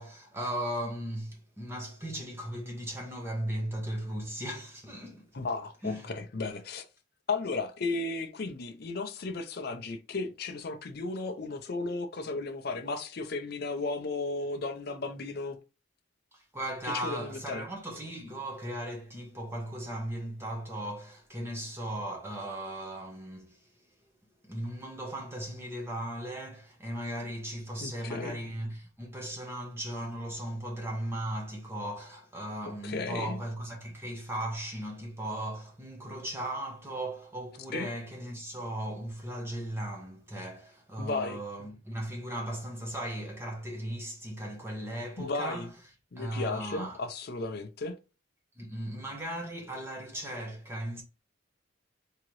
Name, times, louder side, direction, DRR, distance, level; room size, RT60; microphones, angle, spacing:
voice 1, 0.0-5.3 5.8-6.1 16.3-23.7 24.4-45.7 46.2-47.0 48.6-51.0, right 1 dB, 10° right, 0.7 m, -37 dB
voice 2, 5.3-6.9 7.3-15.6 16.8-17.7 27.8-28.4 32.8-33.4 37.7-37.9 41.0-41.4 45.2-45.7 46.1-48.0, left 3 dB, 50° left, 0.5 m, -34 dB
3.8 x 2.9 x 3.0 m
head